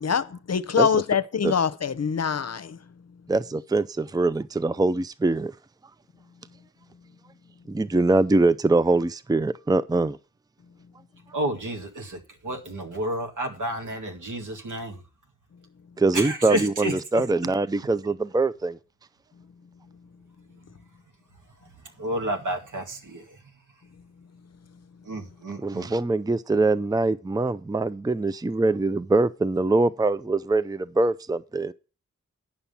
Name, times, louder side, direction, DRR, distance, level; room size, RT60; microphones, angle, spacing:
voice 1, 0.0-2.8, left 7 dB, 55° left, 0.7 m, -24 dB
voice 2, 3.3-5.5 7.7-10.2 16.0-18.8 25.6-31.7, right 2 dB, 15° right, 0.5 m, -23 dB
voice 3, 11.3-15.0 16.1-17.2 22.0-23.2 25.1-25.9, right 1 dB, 75° right, 2.2 m, -30 dB
10.0 x 5.7 x 7.0 m
cardioid pair, 50°, 31 cm